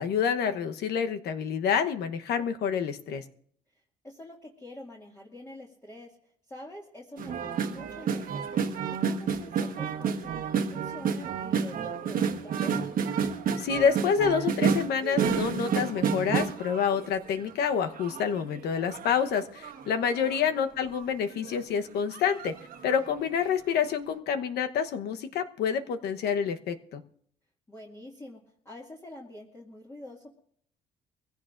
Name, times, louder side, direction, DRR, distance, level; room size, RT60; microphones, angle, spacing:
voice 1, 0.0-3.2 13.6-22.5 22.8-27.0, left 7 dB, 70° left, 8 dB, 1.1 m, -28 dB
voice 2, 4.0-6.2 6.5-12.9 20.1-20.4 27.7-30.4, left 1 dB, 15° left, -3 dB, 2.2 m, -46 dB
sound 1, 7.2-17.5 18.0-20.4 20.9-21.0 21.3-21.6 22.1-23.1 23.4-23.5, right 6 dB, 60° right, 1.3 m, -30 dB
24.0 x 16.0 x 2.6 m, 0.64 s
cardioid pair, 110°, 17 cm